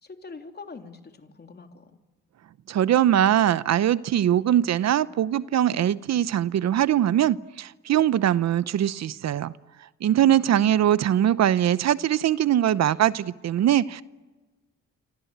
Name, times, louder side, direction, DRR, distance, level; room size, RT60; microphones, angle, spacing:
voice 1, 0.0-2.0 10.2-10.8, left 4 dB, 35° left, 3.2 m, -43 dB
voice 2, 2.7-9.5 10.0-14.0, right 11 dB, 60° right, 0.8 m, -22 dB
28.0 x 25.5 x 8.1 m
cardioid pair, 90°, 30 cm